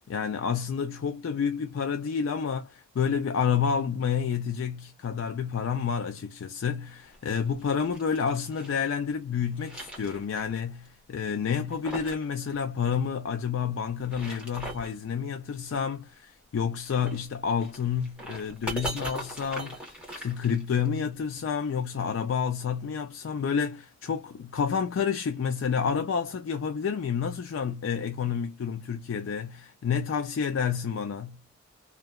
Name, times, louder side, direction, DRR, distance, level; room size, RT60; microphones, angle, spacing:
voice 1, 0.1-19.9 20.1-31.4, left 6 dB, 85° left, 0.4 m, -29 dB
sound 1, 7.1-8.9 9.3-10.6 10.8-10.9 11.5-12.3 12.5-12.6 13.9-15.0 16.9-21.0, right 1 dB, 5° right, 1.0 m, -40 dB
2.8 x 2.2 x 2.2 m
head